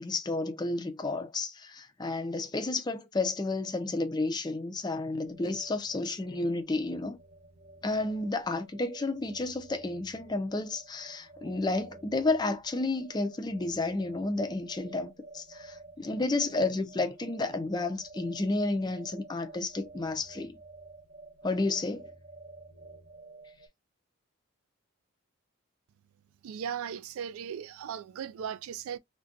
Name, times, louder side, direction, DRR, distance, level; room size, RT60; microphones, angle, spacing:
voice 1, 0.0-7.2 7.8-20.6 21.4-22.1, left 2 dB, 20° left, 0.4 m, -31 dB
sound 1, 5.2-23.7, right 2 dB, 50° right, 0.8 m, -51 dB
voice 2, 26.4-29.0, right 8 dB, 80° right, 0.3 m, -37 dB
2.4 x 2.2 x 3.7 m
head